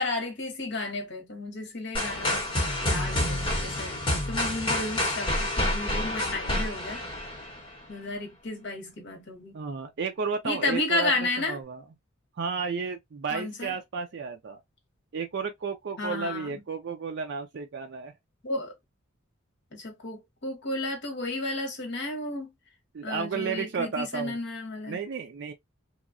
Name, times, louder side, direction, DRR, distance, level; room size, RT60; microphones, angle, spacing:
voice 1, 0.0-2.5 2.8-7.0 7.9-9.5 10.4-11.6 13.3-13.7 16.0-16.6 18.4-18.7 19.7-22.5 23.0-25.0, left 2 dB, 60° left, 1.0 m, -32 dB
sound 1, 1.9-7.8, left 1 dB, 25° left, 1.1 m, -28 dB
voice 2, 9.5-11.1 11.5-11.8 12.4-14.6 15.1-18.1 22.9-24.4 24.9-25.5, right 5 dB, 55° right, 0.4 m, -32 dB
3.0 x 2.3 x 2.5 m
head